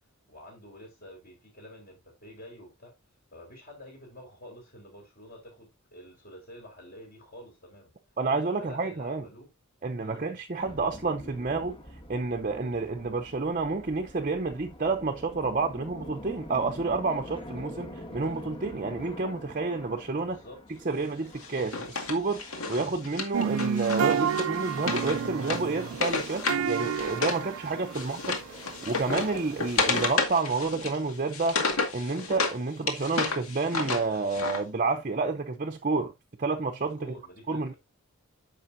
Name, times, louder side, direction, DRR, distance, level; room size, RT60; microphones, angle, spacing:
voice 1, 0.3-2.9 3.3-7.9 8.5-9.5 10.0-10.2 20.2-20.6 27.8-28.1 37.0-37.8, equal, 45° left, 4.6 m, -48 dB
voice 2, 8.2-9.3 9.8-11.8 12.1-20.4 20.8-36.1 36.4-37.1 37.5-37.7, right 3 dB, 35° right, 0.7 m, -30 dB
sound 1, 10.6-30.2, left 1 dB, 25° left, 1.8 m, -47 dB
Wood, 21.4-27.4 27.7-32.6 32.9-34.6, left 4 dB, 75° left, 2.0 m, -31 dB
sound 2, 23.3-30.1, right 7 dB, 75° right, 0.4 m, -31 dB
9.8 x 6.8 x 2.7 m
head